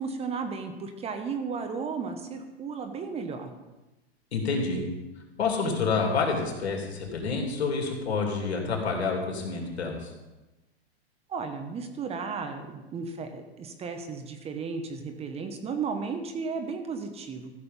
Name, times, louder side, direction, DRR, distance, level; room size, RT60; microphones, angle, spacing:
voice 1, 0.0-3.5 11.3-17.5, right 5 dB, 20° right, 7 dB, 1.0 m, -34 dB
voice 2, 4.3-4.8 5.4-10.1, left 4 dB, 85° left, 1 dB, 3.2 m, -28 dB
14.5 x 6.7 x 5.4 m, 1.1 s
hypercardioid pair, 130°, 32 cm